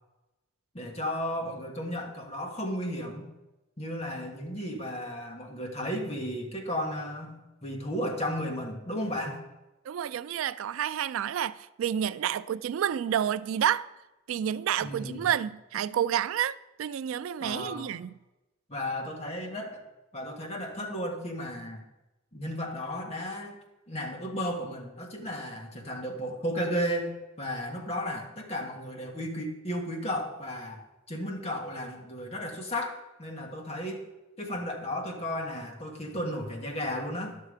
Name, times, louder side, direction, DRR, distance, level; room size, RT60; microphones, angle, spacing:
voice 1, 0.7-3.3 3.8-9.4 14.8-15.3 17.4-17.9 18.7-19.8 20.1-21.8 22.3-23.6 23.9-34.0 34.4-37.4, equal, 30° left, 1.4 m, -34 dB
voice 2, 9.9-13.9 14.3-18.1, right 9 dB, 80° right, 0.3 m, -29 dB
11.0 x 6.8 x 5.0 m
head